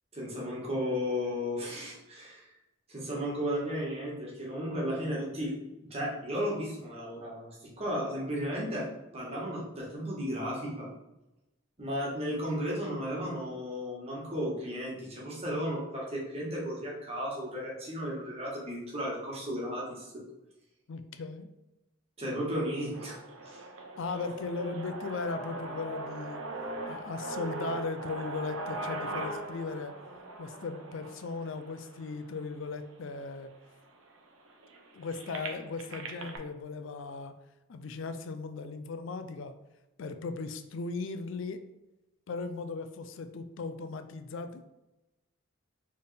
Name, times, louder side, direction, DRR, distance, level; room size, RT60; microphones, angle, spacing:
voice 1, 0.1-2.5 2.9-7.5 7.8-8.9 9.1-10.9 11.8-20.1 22.2-23.6, equal, 30° right, -4 dB, 1.4 m, -34 dB
voice 2, 20.9-21.5 24.0-26.4 26.9-29.9 30.4-33.5 34.9-37.3 37.7-39.5 40.0-41.6 42.3-44.6, left 4 dB, 70° left, 9 dB, 0.4 m, -37 dB
sound 1, 22.9-32.9 33.6-33.7 33.9-36.4, right 2 dB, 80° right, 0.7 m, -40 dB
4.5 x 3.4 x 3.3 m, 0.98 s
head